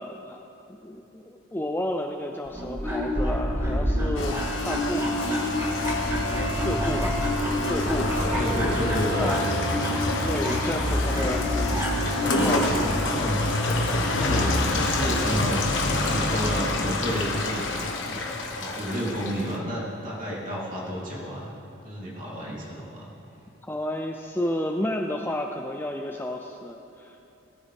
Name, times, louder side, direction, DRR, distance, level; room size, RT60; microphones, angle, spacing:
voice 1, 0.0-5.2 5.7-5.9 6.3-7.2 7.6-8.5 9.2-9.4 10.2-12.0 12.4-12.9 23.6-27.3, left 1 dB, 10° left, 3 dB, 0.4 m, -32 dB
sound 1, 2.5-12.7, equal, 15° right, 1.8 m, -28 dB
Rain, 4.2-19.6, left 2 dB, 60° left, 1.3 m, -27 dB
sound 2, 5.0-12.4, equal, 55° right, 3.4 m, -42 dB
voice 2, 6.6-7.0 7.9-9.3 9.7-9.8 13.0-13.4 14.1-17.6 18.1-18.2 18.5-21.5 21.8-23.1, equal, 40° right, -6 dB, 3.3 m, -31 dB
18.5 x 13.5 x 3.6 m, 2.8 s
head